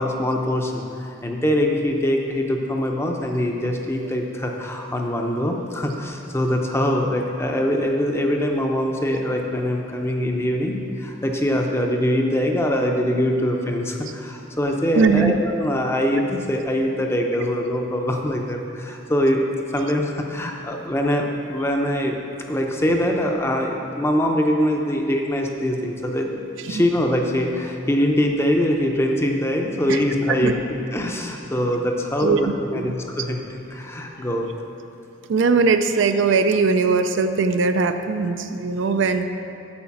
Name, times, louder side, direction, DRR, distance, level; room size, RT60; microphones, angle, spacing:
voice 1, 0.0-19.4 19.7-22.2 22.5-26.4 26.7-30.6 30.9-33.4 33.7-34.5, equal, 10° left, 1 dB, 0.6 m, -23 dB
voice 2, 15.0-15.3 26.7-26.8 29.9-30.0 30.4-30.5 32.2-32.4 32.7-32.9 35.3-39.2, right 4 dB, 65° right, 8 dB, 0.4 m, -20 dB
8.6 x 5.1 x 7.1 m, 2.7 s
head